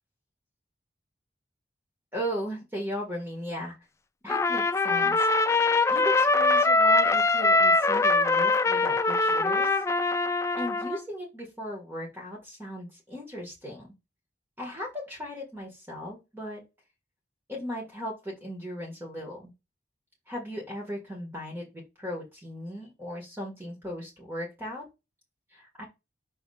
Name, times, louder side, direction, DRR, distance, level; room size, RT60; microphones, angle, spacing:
voice 1, 2.1-3.8 4.2-5.2 5.9-9.8 10.6-13.9 14.6-16.6 17.5-19.5 20.3-24.8 25.5-25.8, equal, 10° right, -1 dB, 1.8 m, -37 dB
Trumpet, 4.3-11.0, left 3 dB, 15° left, 0.3 m, -23 dB
5.5 x 3.5 x 4.9 m, 0.24 s
head